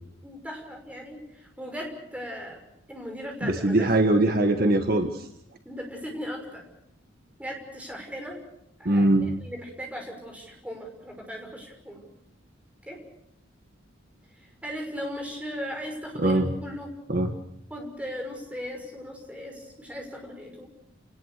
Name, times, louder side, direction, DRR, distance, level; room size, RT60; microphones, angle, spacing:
voice 1, 0.2-2.6 2.9-3.9 5.6-6.6 7.4-8.4 8.8-12.0 12.9-13.0 14.4-16.9 17.7-20.7, equal, 5° right, 1 dB, 6.0 m, -38 dB
voice 2, 3.4-5.3 8.8-9.3 16.2-16.5 17.1-17.3, right 2 dB, 50° right, 6 dB, 1.6 m, -22 dB
29.0 x 19.5 x 6.8 m, 0.74 s
head